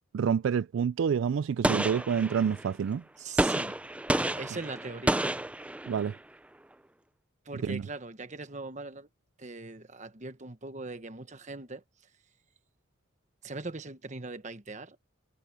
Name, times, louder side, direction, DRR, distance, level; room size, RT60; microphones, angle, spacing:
voice 1, 0.1-3.0 5.9-6.2 7.6-7.8, right 7 dB, 70° right, 0.3 m, -28 dB
Gunshot gunfire, 1.6-2.7 3.4-6.2, right 1 dB, 5° right, 0.4 m, -30 dB
voice 2, 3.2-3.8 4.4-5.3 7.4-9.1 9.4-11.8 13.4-15.0, right 3 dB, 35° right, 1.2 m, -40 dB
head